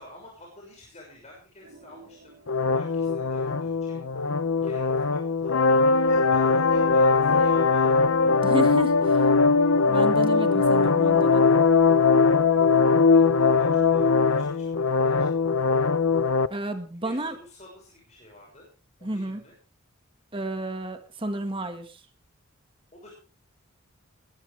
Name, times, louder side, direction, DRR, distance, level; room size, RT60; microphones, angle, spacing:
voice 1, 0.0-4.0 4.6-5.7 6.1-8.0 13.1-15.5 17.0-18.7 19.0-19.6 22.9-23.1, left 1 dB, 30° left, -2 dB, 6.3 m, -48 dB
sound 1, 1.6-4.3 5.8-10.1 11.4-16.3 16.6-16.7 17.3-17.4, right 2 dB, 65° right, 5.0 m, -50 dB
sound 2, 2.5-16.5, left 4 dB, 75° left, 0.9 m, -21 dB
voice 2, 8.4-9.3 9.9-11.4 16.5-17.4 19.0-19.4 20.3-22.0, right 1 dB, 25° right, 7 dB, 1.8 m, -31 dB
21.5 x 14.0 x 3.4 m, 0.36 s
head